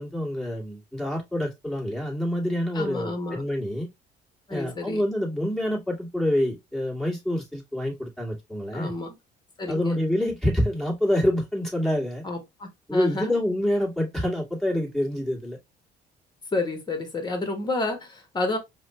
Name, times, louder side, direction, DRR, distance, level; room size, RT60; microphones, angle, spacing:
voice 1, 0.0-3.9 4.5-8.9 9.7-12.2 12.9-15.6, left 1 dB, 5° left, 1.9 m, -27 dB
voice 2, 2.7-3.4 4.5-5.0 8.7-9.1 9.6-10.0 12.2-13.3 16.5-18.6, left 2 dB, 25° left, 1.3 m, -30 dB
4.8 x 2.3 x 3.0 m
cardioid pair, 110°, 17 cm